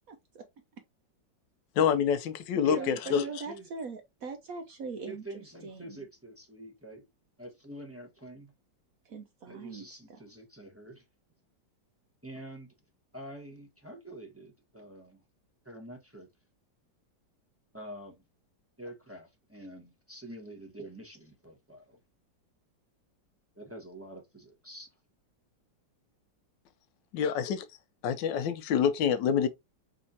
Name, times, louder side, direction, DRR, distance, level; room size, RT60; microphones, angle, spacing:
voice 1, 0.1-0.5 2.7-6.0 9.0-10.2, right 4 dB, 65° right, 0.9 m, -41 dB
voice 2, 1.8-3.2 27.1-27.6 28.0-29.5, left 7 dB, 80° left, 1.3 m, -27 dB
voice 3, 2.6-3.7 5.1-7.0 7.4-8.5 9.5-11.0 12.2-12.7 13.1-15.2 15.6-16.3 17.7-18.2 18.8-22.0 23.5-24.9, right 1 dB, 10° right, 0.9 m, -46 dB
5.1 x 3.5 x 2.7 m
omnidirectional pair, 2.0 m